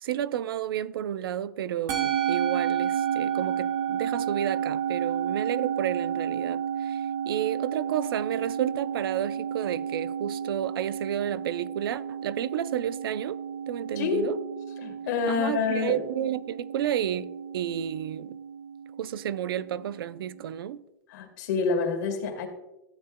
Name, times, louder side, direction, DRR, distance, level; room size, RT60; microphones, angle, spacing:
voice 1, 0.0-13.4 13.7-14.4 15.3-18.4 19.0-20.8, right 10 dB, 85° right, 0.5 m, -31 dB
Musical instrument, 1.9-20.4, right 8 dB, 30° right, 1.2 m, -32 dB
voice 2, 14.8-16.0 21.1-22.5, left 5 dB, 55° left, 2.4 m, -27 dB
14.0 x 9.9 x 2.2 m
supercardioid pair, 165°, 12 cm